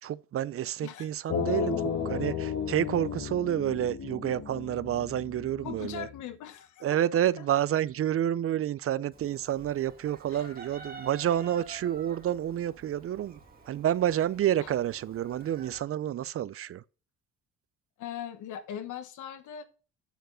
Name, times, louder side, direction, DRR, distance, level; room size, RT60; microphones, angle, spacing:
voice 1, 0.0-6.1 6.8-13.4 13.7-16.8, right 11 dB, 50° right, 0.4 m, -29 dB
sound 1, 1.3-6.2, left 6 dB, 65° left, 1.3 m, -34 dB
voice 2, 5.6-6.8 18.0-19.6, left 10 dB, 80° left, 1.2 m, -39 dB
Chicken rooster, 9.1-15.8, right 3 dB, 30° right, 2.0 m, -49 dB
9.1 x 4.6 x 5.0 m
cardioid pair, 90°, 30 cm